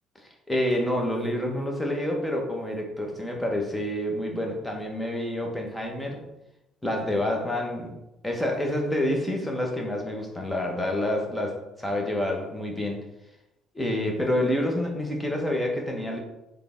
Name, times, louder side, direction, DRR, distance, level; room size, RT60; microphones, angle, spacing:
voice 1, 0.5-6.3 6.8-7.9 8.2-13.0 13.7-16.2, left 1 dB, 10° left, 1 dB, 1.2 m, -28 dB
3.8 x 3.4 x 3.6 m, 0.92 s
supercardioid pair, 80°, 0 cm